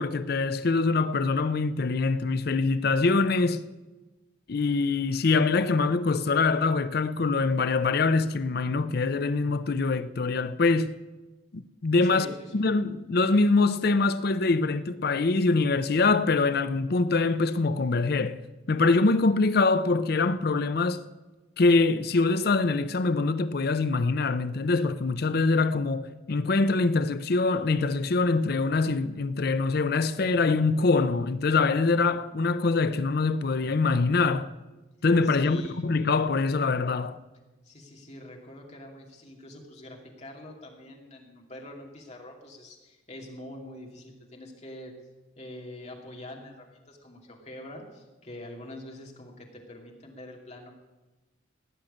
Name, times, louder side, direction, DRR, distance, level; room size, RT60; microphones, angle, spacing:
voice 1, 0.0-3.6 4.5-11.0 11.5-12.3 12.5-18.4 18.7-21.0 21.6-34.5 35.0-37.2, left 3 dB, 55° left, 0.5 m, -24 dB
voice 2, 12.0-12.7 35.2-35.8 37.6-44.9 45.4-50.7, left 1 dB, 35° left, 2.6 m, -44 dB
18.0 x 6.5 x 9.8 m
head